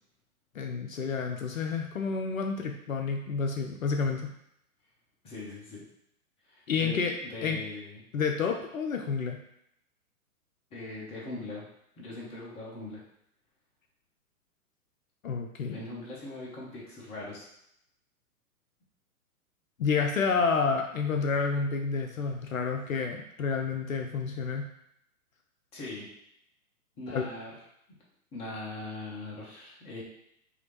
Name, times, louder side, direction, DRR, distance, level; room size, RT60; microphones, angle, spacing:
voice 1, 0.5-4.3 6.7-7.1 7.4-7.6 8.1-9.4 15.2-15.8 19.8-24.6 27.1-27.3, left 5 dB, 65° left, 3 dB, 0.7 m, -29 dB
voice 2, 5.2-5.8 6.5-8.0 10.7-11.6 12.0-13.0 15.7-17.5 25.7-26.1 27.0-27.5 28.3-30.0, left 2 dB, 15° left, -4 dB, 0.9 m, -41 dB
5.0 x 2.9 x 3.1 m, 0.76 s
figure-of-eight pair, 115°, 45 cm